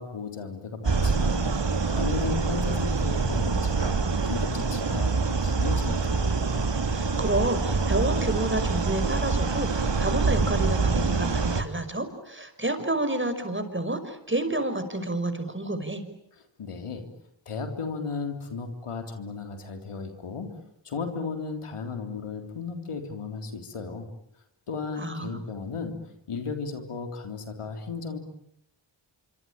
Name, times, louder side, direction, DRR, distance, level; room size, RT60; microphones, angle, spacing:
voice 1, 0.0-1.5 1.9-6.3 16.6-17.1 17.5-20.5 20.9-24.1 24.7-26.0 26.3-28.2, left 4 dB, 85° left, 6 dB, 3.6 m, -35 dB
sound 1, 0.8-11.6, right 4 dB, 55° right, 3.0 m, -25 dB
voice 2, 6.9-16.0 25.0-25.4, right 2 dB, 25° right, 9 dB, 5.7 m, -29 dB
26.0 x 25.0 x 9.0 m, 0.76 s
cardioid pair, 40°, 50 cm